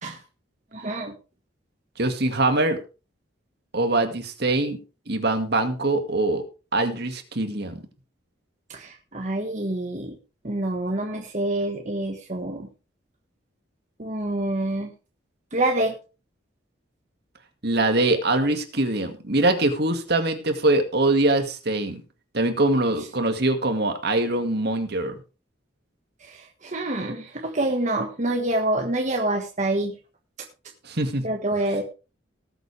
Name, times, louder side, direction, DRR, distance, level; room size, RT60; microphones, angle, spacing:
voice 1, 0.7-1.1 8.7-10.1 10.4-12.7 14.0-14.9 15.5-15.9 26.2-26.4 26.6-29.9 31.2-31.8, right 1 dB, 40° right, 2 dB, 1.5 m, -26 dB
voice 2, 2.0-2.8 3.7-4.8 5.1-6.4 6.7-7.8 17.6-22.0 22.3-25.2 30.9-31.2, right 2 dB, 55° right, 6 dB, 2.1 m, -23 dB
19.0 x 8.0 x 3.4 m, 0.32 s
head